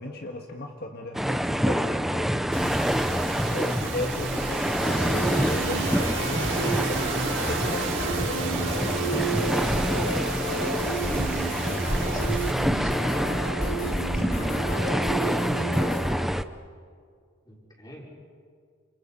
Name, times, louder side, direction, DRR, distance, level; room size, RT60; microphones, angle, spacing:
voice 1, 0.0-2.9 3.5-7.0 7.3-8.8 9.5-10.2, left 1 dB, 50° left, 2 dB, 1.7 m, -36 dB
sound 1, 1.1-16.4, equal, ahead, 0.6 m, -27 dB
sound 2, 2.5-12.5, right 4 dB, 65° right, 5.9 m, -33 dB
sound 3, 4.8-16.1, right 2 dB, 80° left, 6.7 m, -32 dB
voice 2, 11.3-11.6 11.9-12.3 12.8-13.4 13.7-14.8 17.4-18.1, equal, 20° left, -2 dB, 5.0 m, -40 dB
29.0 x 28.5 x 5.6 m, 2.1 s
head